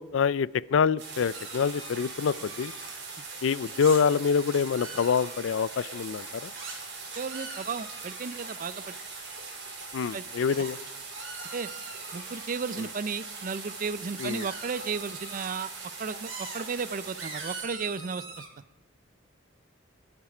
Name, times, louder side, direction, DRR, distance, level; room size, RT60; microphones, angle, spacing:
voice 1, 0.0-2.7 3.4-6.5 9.9-10.8 14.2-14.5, left 6 dB, 70° left, 22 dB, 0.4 m, -26 dB
sound 1, 1.0-17.6, right 4 dB, 60° right, 3.7 m, -41 dB
sound 2, 1.3-2.9 3.8-4.0 4.5-5.6 6.5-6.7 7.1-8.3 10.6-10.7 11.1-12.4 14.2-15.5 16.3-16.7 17.2-18.5, right 4 dB, 80° right, 4.0 m, -43 dB
voice 2, 7.2-9.0 10.1-10.6 11.5-11.7 12.1-15.7 16.0-18.4, right 5 dB, 45° right, 17 dB, 0.5 m, -34 dB
22.0 x 7.4 x 4.9 m, 1.0 s
head